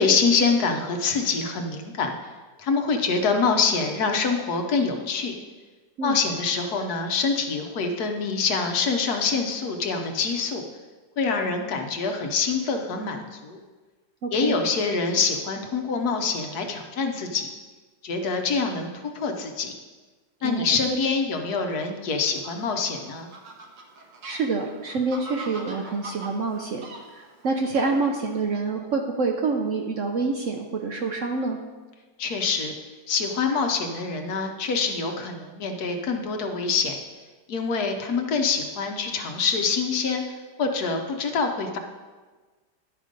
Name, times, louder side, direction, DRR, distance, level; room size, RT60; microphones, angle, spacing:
voice 1, 0.0-2.1 2.6-5.3 6.0-10.6 11.2-13.6 14.3-17.5 18.0-18.9 19.1-19.7 20.4-23.3 32.2-32.7 33.1-36.9 37.5-41.8, left 4 dB, 65° left, 4 dB, 1.3 m, -25 dB
voice 2, 14.2-14.6 20.4-20.7 24.2-31.6, right 4 dB, 60° right, 2 dB, 0.8 m, -27 dB
Fowl, 22.2-28.4, right 2 dB, 85° right, 1.8 m, -43 dB
11.0 x 5.1 x 5.1 m, 1.3 s
omnidirectional pair, 1.9 m